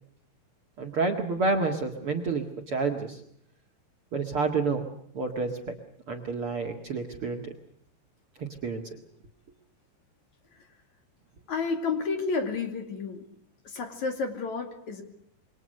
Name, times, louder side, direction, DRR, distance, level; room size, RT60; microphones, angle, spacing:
voice 1, 0.8-3.2 4.1-4.9 5.1-5.7 6.1-7.5 8.4-8.9, right 4 dB, 45° right, 3 dB, 2.1 m, -29 dB
voice 2, 11.5-13.3 13.7-15.0, left 4 dB, 50° left, 6 dB, 3.6 m, -31 dB
27.5 x 23.5 x 6.6 m, 0.71 s
omnidirectional pair, 4.4 m